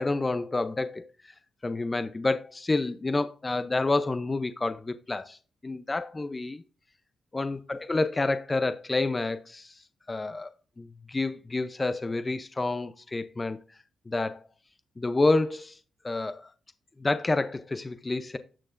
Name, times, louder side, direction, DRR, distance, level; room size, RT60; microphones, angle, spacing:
voice 1, 0.0-1.3 1.6-5.4 5.6-6.6 7.3-9.8 10.1-10.5 10.8-13.6 14.1-14.4 15.0-15.8 16.0-16.5 17.0-18.4, left 2 dB, 25° left, 0.6 m, -29 dB
12.0 x 6.3 x 2.5 m
cardioid pair, 65°, 0 cm